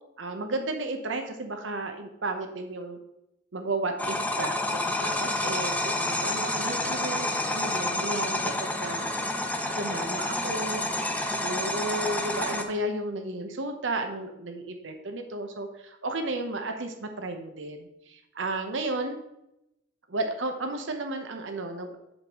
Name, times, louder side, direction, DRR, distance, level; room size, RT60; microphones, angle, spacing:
voice 1, 0.2-3.0 3.5-9.1 9.6-10.9 11.3-19.2 20.1-22.0, right 2 dB, 80° right, 5 dB, 1.0 m, -33 dB
sound 1, 4.0-12.6, left 1 dB, 10° left, 0.6 m, -29 dB
11.0 x 5.2 x 3.1 m, 0.88 s
head